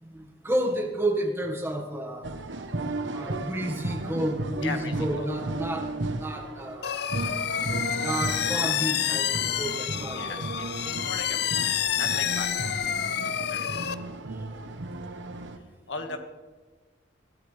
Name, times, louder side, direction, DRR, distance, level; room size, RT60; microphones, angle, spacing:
voice 1, 0.0-2.3 3.1-5.9 6.1-7.1 8.0-9.3 9.6-10.5 16.0-16.2, right 1 dB, 15° right, 3 dB, 1.5 m, -31 dB
sound 1, 2.2-15.6, right 2 dB, 80° right, 1.0 m, -35 dB
voice 2, 4.6-5.3 9.9-13.8 15.9-16.2, left 4 dB, 85° left, 5 dB, 1.7 m, -38 dB
sound 2, 6.8-13.9, left 10 dB, 60° left, 0.6 m, -28 dB
21.0 x 14.0 x 3.3 m, 1.4 s
head